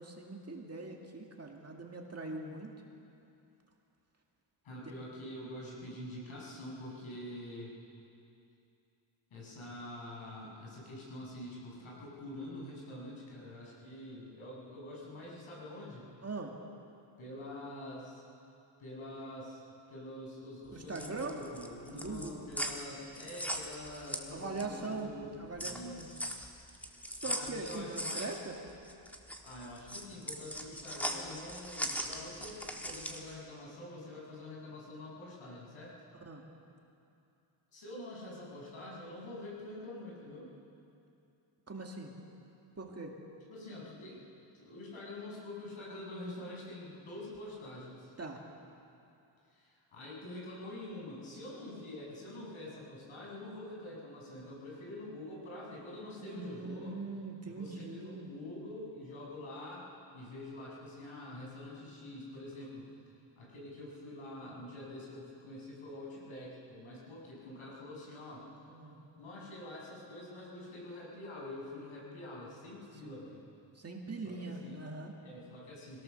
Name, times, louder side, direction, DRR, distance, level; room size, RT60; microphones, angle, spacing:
voice 1, 0.0-2.7 16.2-16.6 20.7-21.4 21.9-22.4 24.3-26.1 27.2-28.6 36.3-36.5 41.7-42.1 42.8-43.2 48.2-48.4 56.2-58.3 68.7-69.0 73.0-73.2 73.7-75.1, right 3 dB, 30° right, 1 dB, 2.2 m, -41 dB
voice 2, 4.6-7.7 9.3-16.1 17.2-18.2 18.8-19.6 19.9-25.3 25.6-26.3 27.2-28.3 29.4-35.9 37.7-40.5 43.5-44.3 44.5-48.1 49.5-57.0 57.5-62.9 63.4-68.5 69.2-73.4 74.2-74.8 75.2-76.0, left 1 dB, 75° left, -4 dB, 6.9 m, -46 dB
sound 1, 20.7-24.9 25.2-33.3, equal, 5° left, 1.6 m, -40 dB
22.5 x 17.0 x 6.9 m, 2.7 s
wide cardioid pair, 125°, 48 cm